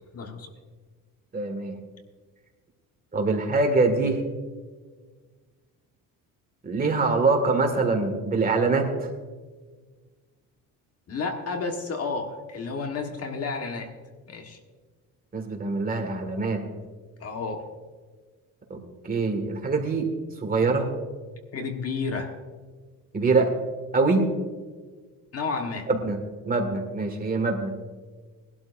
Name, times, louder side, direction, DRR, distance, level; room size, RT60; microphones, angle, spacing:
voice 1, 0.1-0.5 11.1-13.9 14.3-14.6 17.2-17.7 21.5-22.3 25.3-25.9, left 4 dB, 45° left, 4 dB, 1.5 m, -31 dB
voice 2, 1.3-1.8 3.1-4.2 6.6-9.1 15.3-16.6 18.7-20.1 20.4-20.9 23.1-23.5 23.9-24.3 25.9-26.2 26.5-27.8, right 3 dB, 25° right, 3 dB, 1.9 m, -24 dB
21.0 x 12.0 x 2.6 m, 1.4 s
cardioid pair, 135°, 34 cm